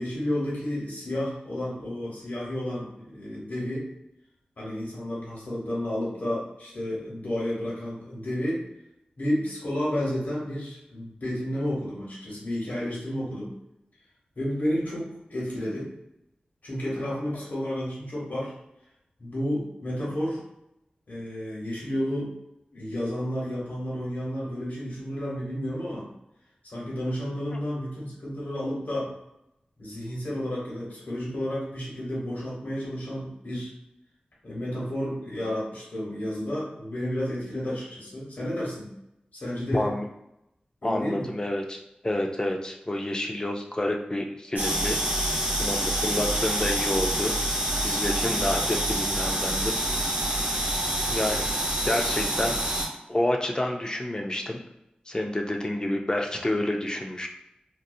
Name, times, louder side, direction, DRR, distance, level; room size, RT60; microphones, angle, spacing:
voice 1, 0.0-3.9 4.6-8.6 9.2-13.5 14.4-15.9 16.6-18.5 19.2-20.4 21.1-22.3 22.7-26.1 26.6-29.1 29.8-33.7 34.4-38.9 39.3-39.9 40.8-41.3, equal, 65° left, -6 dB, 1.1 m, -31 dB
voice 2, 39.7-40.1 40.8-45.0 45.6-47.3 47.8-49.7 50.7-50.8 51.1-51.5 51.8-52.6 53.1-54.6 55.1-57.3, left 1 dB, 25° left, 2 dB, 0.4 m, -29 dB
sound 1, 44.6-52.9, right 1 dB, 75° right, 0.8 m, -27 dB
2.6 x 2.0 x 2.6 m, 0.84 s
wide cardioid pair, 60°, 3 cm